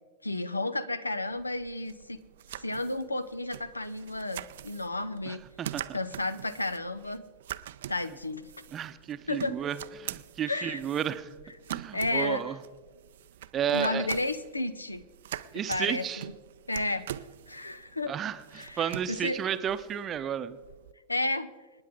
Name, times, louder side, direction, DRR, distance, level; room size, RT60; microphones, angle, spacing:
voice 1, 0.2-2.2 2.5-5.4 5.9-7.2 7.9-8.5 9.3-9.6 10.5-10.8 11.9-12.4 13.7-15.0 15.7-16.3 16.7-17.2 17.5-18.1 18.5-19.4 21.1-21.5, left 2 dB, 80° left, 16 dB, 0.6 m, -32 dB
sound 1, 1.3-20.9, right 12 dB, 60° right, 0.4 m, -44 dB
voice 2, 5.3-6.0 8.7-11.3 11.7-12.6 13.5-14.1 15.5-16.2 18.1-20.6, right 9 dB, 25° right, 12 dB, 0.7 m, -32 dB
27.0 x 9.8 x 3.7 m, 1.4 s
figure-of-eight pair, 90°, 0 cm